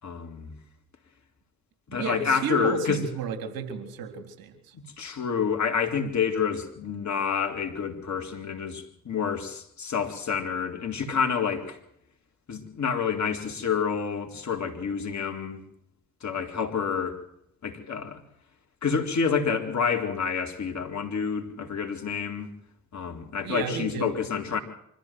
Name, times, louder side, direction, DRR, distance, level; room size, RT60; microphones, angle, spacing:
voice 1, 0.0-0.6 1.9-3.0 4.7-11.8 12.5-15.6 16.2-17.2 17.6-18.2 18.8-22.5 22.9-24.6, left 6 dB, 50° left, 3 dB, 4.1 m, -28 dB
voice 2, 1.9-4.7 23.4-24.1, right 6 dB, 70° right, 7 dB, 3.8 m, -32 dB
25.5 x 14.5 x 7.8 m, 0.74 s
hypercardioid pair, 50°, 37 cm